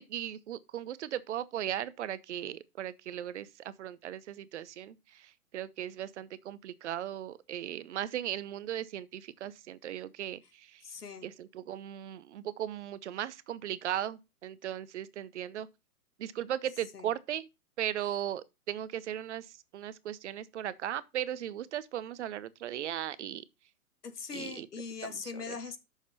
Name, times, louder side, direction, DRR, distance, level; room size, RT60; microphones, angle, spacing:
voice 1, 0.0-10.8 11.2-15.7 16.2-17.5 17.8-23.4 24.3-24.7 25.5-25.6, right 11 dB, 50° right, 0.7 m, -37 dB
voice 2, 10.8-11.3 16.9-17.1 24.0-25.8, left 5 dB, 85° left, 1.6 m, -41 dB
6.6 x 6.2 x 5.5 m
hypercardioid pair, 130°, 45 cm